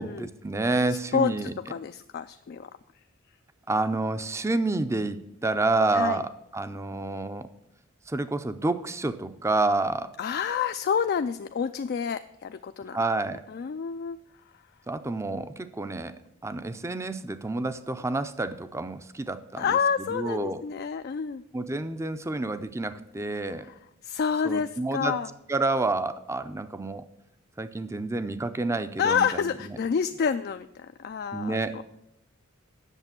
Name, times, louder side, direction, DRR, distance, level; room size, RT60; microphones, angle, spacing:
voice 1, 0.0-1.5 3.7-5.2 5.4-7.5 8.1-10.1 12.9-13.4 14.9-19.8 20.1-20.6 21.5-23.7 24.4-25.2 25.5-27.0 27.6-29.3 29.6-29.8 31.3-31.8, right 2 dB, 15° right, 12 dB, 0.5 m, -29 dB
voice 2, 0.9-2.7 5.9-6.2 10.2-13.0 13.5-14.2 14.5-14.6 19.6-21.4 23.6-25.3 29.0-31.8, left 6 dB, 50° left, 9 dB, 0.3 m, -29 dB
8.2 x 6.9 x 7.3 m, 0.84 s
head